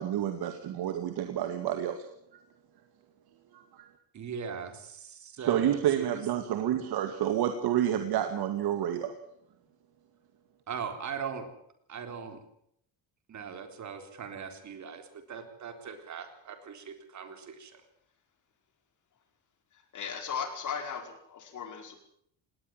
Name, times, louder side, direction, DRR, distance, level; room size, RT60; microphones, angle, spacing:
voice 1, 0.0-2.0 3.7-3.9 5.4-9.1, right 11 dB, 55° right, 7 dB, 2.1 m, -29 dB
voice 2, 4.1-6.2 10.7-11.5 11.9-12.4 13.3-17.8, right 6 dB, 40° right, 7 dB, 3.9 m, -40 dB
voice 3, 19.9-21.9, left 7 dB, 40° left, 5 dB, 5.1 m, -36 dB
20.0 x 18.0 x 7.7 m, 0.71 s
cardioid pair, 150°, 44 cm